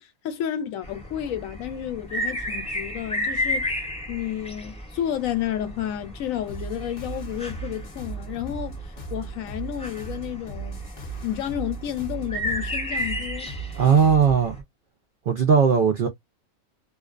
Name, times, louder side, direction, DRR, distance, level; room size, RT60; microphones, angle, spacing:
voice 1, 0.0-3.7 4.1-8.8 9.1-10.8 11.2-13.5, left 11 dB, 75° left, 1.0 m, -31 dB
sound 1, 0.8-14.6, left 1 dB, 5° left, 0.5 m, -33 dB
sound 2, 6.5-14.4, right 4 dB, 40° left, 0.7 m, -37 dB
voice 2, 13.7-14.6 15.3-16.1, right 6 dB, 80° right, 0.4 m, -18 dB
2.5 x 2.2 x 2.3 m
omnidirectional pair, 1.5 m